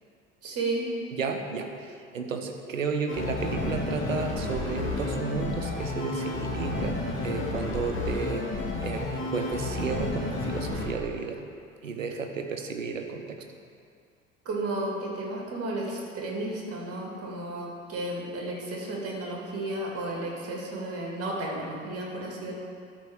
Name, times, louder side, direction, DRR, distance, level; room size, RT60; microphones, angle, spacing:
voice 1, 0.4-0.9 14.4-22.5, right 2 dB, 40° right, -2 dB, 2.4 m, -33 dB
voice 2, 1.1-11.4 11.8-13.4, right 5 dB, 80° right, 5 dB, 0.8 m, -33 dB
sound 1, 3.1-10.9, left 2 dB, 30° left, 2.3 m, -31 dB
12.0 x 4.2 x 6.4 m, 2.3 s
figure-of-eight pair, 60°, 38 cm